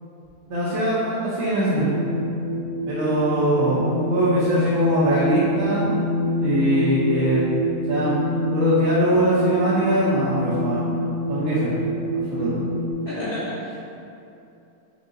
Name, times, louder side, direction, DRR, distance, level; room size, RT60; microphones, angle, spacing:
voice 1, 0.5-2.1 2.9-5.9 6.4-7.4 7.9-8.2 8.5-10.8 11.3-11.8 12.1-12.6, equal, 65° right, -10 dB, 1.2 m, -22 dB
sound 1, 1.7-12.9, right 1 dB, 60° left, 1.4 m, -26 dB
voice 2, 13.0-13.8, left 1 dB, 45° left, -11 dB, 0.9 m, -30 dB
5.4 x 3.5 x 2.6 m, 2.7 s
omnidirectional pair, 1.7 m